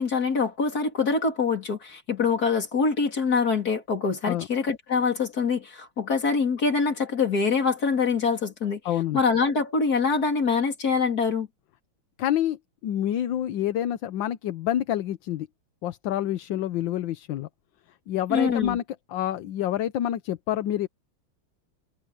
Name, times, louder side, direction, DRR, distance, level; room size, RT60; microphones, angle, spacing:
voice 1, 0.0-8.8 9.1-11.5 18.3-18.8, left 5 dB, 45° left, 3.7 m, -24 dB
voice 2, 8.8-9.2 12.2-15.5 15.8-17.5 18.1-18.8 19.1-20.9, left 12 dB, 70° left, 1.5 m, -27 dB
omnidirectional pair, 2.3 m